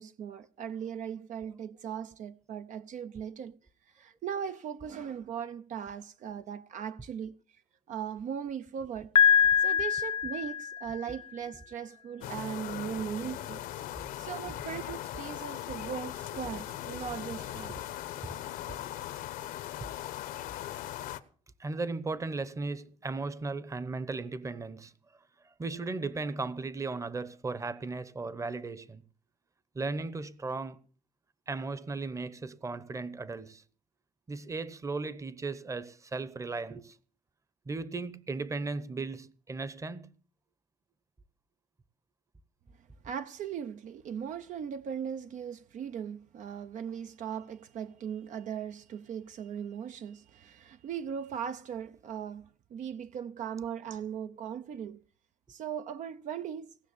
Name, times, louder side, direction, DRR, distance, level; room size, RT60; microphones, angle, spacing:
voice 1, 0.0-3.5 3.9-7.3 7.9-9.1 9.6-13.7 14.2-17.7 43.0-55.0 55.5-56.8, right 8 dB, 60° right, 0.7 m, -38 dB
Piano, 9.2-11.1, left 8 dB, 35° left, 0.6 m, -24 dB
sound 1, 12.2-21.2, left 13 dB, 80° left, 1.1 m, -39 dB
voice 2, 21.6-24.9 25.4-29.0 29.7-30.8 31.5-33.6 34.3-37.0 37.7-40.1, right 3 dB, 20° right, 1.0 m, -36 dB
18.0 x 6.2 x 8.4 m
cardioid pair, 100°, 14 cm